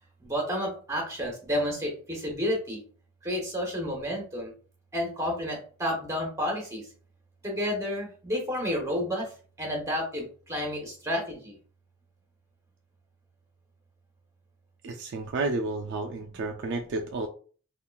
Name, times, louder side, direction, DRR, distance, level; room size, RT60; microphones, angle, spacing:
voice 1, 0.2-2.8 3.2-4.5 4.9-6.9 7.4-9.3 9.6-11.5, equal, 15° right, 0 dB, 1.0 m, -30 dB
voice 2, 14.8-17.3, right 3 dB, 55° right, 3 dB, 0.3 m, -31 dB
3.6 x 2.4 x 2.3 m, 0.41 s
head